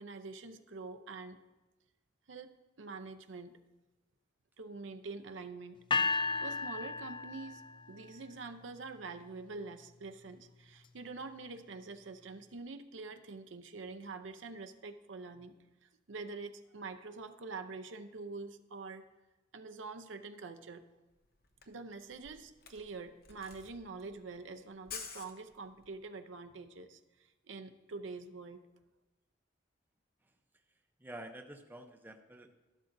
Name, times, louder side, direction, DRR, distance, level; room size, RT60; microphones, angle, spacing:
voice 1, 0.0-1.4 2.3-3.5 4.6-6.1 6.4-19.0 19.5-20.8 21.7-28.6, right 3 dB, 80° right, 8 dB, 0.6 m, -46 dB
sound 1, 5.9-8.0, left 4 dB, 25° left, 0.4 m, -33 dB
Camera, 21.1-21.2 21.4-26.0, left 6 dB, 55° left, 0.9 m, -49 dB
voice 2, 31.0-32.5, right 1 dB, 10° right, 5 dB, 0.7 m, -48 dB
13.0 x 11.5 x 2.6 m, 1.1 s
head